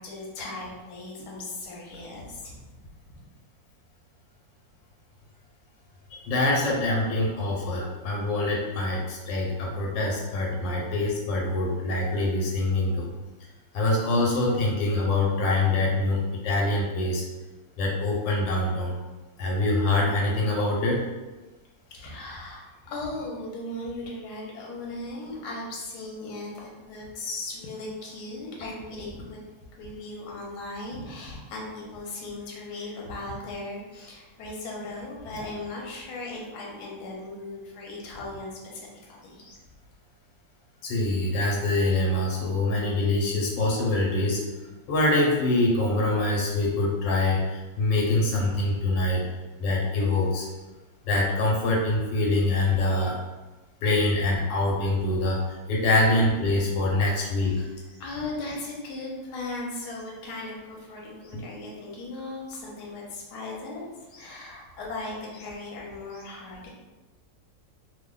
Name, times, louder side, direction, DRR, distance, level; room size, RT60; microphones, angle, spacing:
voice 1, 0.0-2.6 3.1-3.2 21.9-29.4 29.8-39.6 55.8-55.9 57.5-66.7, left 2 dB, 70° left, -3 dB, 1.3 m, -37 dB
voice 2, 6.1-13.1 13.7-17.2 17.8-19.0 19.4-21.0 40.8-44.4 44.9-49.2 49.6-50.5 51.1-53.2 53.8-55.4 55.7-57.6 61.3-61.4, left 2 dB, 90° left, -2 dB, 1.4 m, -24 dB
2.9 x 2.2 x 3.7 m, 1.2 s
omnidirectional pair, 1.9 m